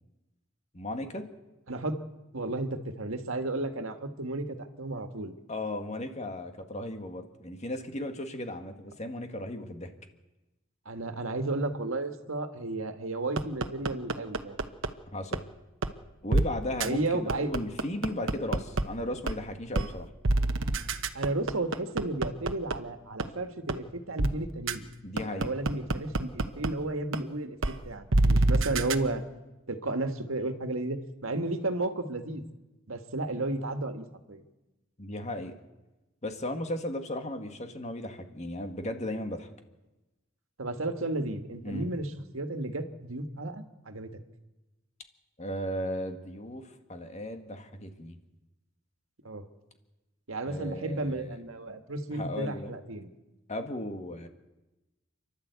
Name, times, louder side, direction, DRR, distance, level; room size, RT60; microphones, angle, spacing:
voice 1, 0.7-1.3 5.5-9.9 15.1-15.5 16.2-20.1 25.0-25.5 35.0-35.6 36.2-39.5 41.6-41.9 45.4-48.2 50.5-51.3 52.1-52.7 53.5-54.3, left 1 dB, 35° left, 6 dB, 1.9 m, -36 dB
voice 2, 1.7-2.0 2.3-5.3 10.9-14.7 16.8-17.5 21.1-24.9 25.2-29.2 29.7-32.5 32.9-34.4 40.6-44.1 49.2-49.5 50.3-53.1, right 2 dB, 85° right, 7 dB, 1.7 m, -33 dB
sound 1, 13.4-14.9 15.3-15.4 15.8-15.9 16.3-16.4 16.8-16.9 17.3-18.8 19.3-19.4 19.7-19.9 20.2-22.7 23.2-23.3 23.7-23.8 24.2-24.3 24.7-24.8 25.2-26.7 27.1-27.2 27.6-27.7 28.1-28.9, right 2 dB, 70° right, 1.1 m, -25 dB
29.0 x 12.0 x 8.2 m, 1.0 s
head